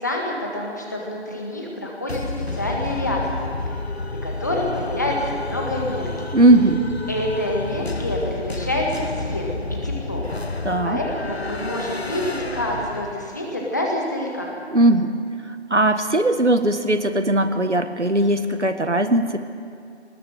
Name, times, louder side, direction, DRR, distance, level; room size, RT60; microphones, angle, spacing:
voice 1, 0.0-2.2 2.5-3.5 4.2-6.4 7.1-9.4 9.8-10.2 10.8-14.5, left 1 dB, 15° left, -1 dB, 1.7 m, -27 dB
sound 1, 2.1-13.5, left 2 dB, 65° left, 1.2 m, -30 dB
voice 2, 6.3-6.8 10.6-11.0 14.7-15.1 15.7-19.4, right 1 dB, 85° right, 9 dB, 1.7 m, -18 dB
20.0 x 19.0 x 7.7 m, 2.5 s
figure-of-eight pair, 165°, 34 cm